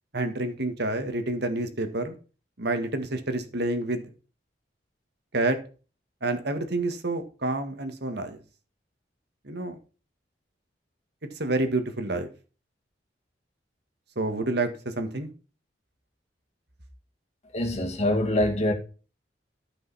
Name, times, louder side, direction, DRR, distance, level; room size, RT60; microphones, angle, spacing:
voice 1, 0.1-2.1 2.6-4.0 5.3-5.6 6.2-8.4 9.5-9.8 11.4-12.3 14.2-15.3, right 2 dB, 65° right, 1.8 m, -28 dB
voice 2, 17.5-18.7, left 1 dB, 40° left, 2.1 m, -24 dB
13.0 x 5.4 x 4.2 m
head